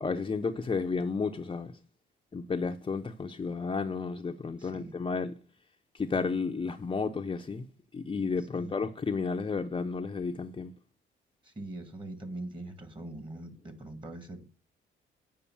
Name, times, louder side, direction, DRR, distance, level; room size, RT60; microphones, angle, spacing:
voice 1, 0.0-1.7 2.3-5.3 6.0-7.7 7.9-10.7, left 4 dB, 25° left, 0.7 m, -32 dB
voice 2, 4.6-4.9 8.4-8.7 11.4-14.4, right 2 dB, 25° right, 1.9 m, -42 dB
8.5 x 5.1 x 7.1 m
cardioid pair, 90°, 20 cm